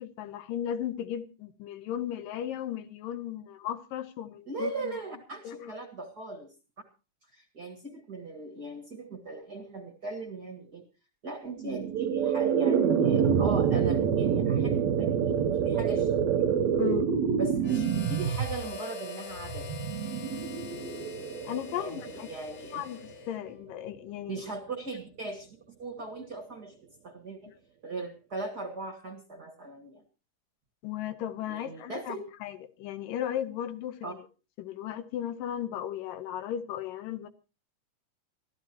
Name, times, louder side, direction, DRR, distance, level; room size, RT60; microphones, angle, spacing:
voice 1, 0.0-5.0 5.4-5.7 16.8-17.1 21.5-22.3 22.7-24.4 30.8-32.2 32.4-34.3 34.6-37.3, left 10 dB, 85° left, 2.6 m, -36 dB
voice 2, 4.5-6.5 7.3-10.8 11.2-16.2 17.4-19.7 21.8-22.8 24.3-25.5 25.8-26.7 27.0-27.5 27.8-30.0 31.5-32.2 34.0-34.1, right 3 dB, 35° right, 1.8 m, -39 dB
sound 1, 11.6-22.7, right 7 dB, 65° right, 1.9 m, -27 dB
Harmonica, 17.6-23.6, left 9 dB, 60° left, 2.9 m, -44 dB
24.5 x 13.5 x 2.9 m
omnidirectional pair, 3.9 m